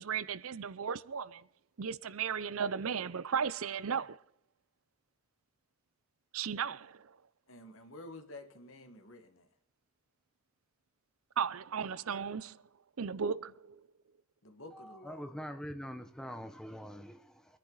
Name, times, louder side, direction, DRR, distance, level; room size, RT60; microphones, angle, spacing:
voice 1, 0.0-1.5 1.8-4.2 6.3-7.2 11.4-12.6 13.0-13.8, right 7 dB, 80° right, 0.6 m, -35 dB
voice 2, 7.5-9.5 14.4-15.3, left 2 dB, 70° left, 1.8 m, -50 dB
voice 3, 14.7-17.6, equal, 5° left, 0.9 m, -44 dB
24.5 x 10.5 x 4.0 m
head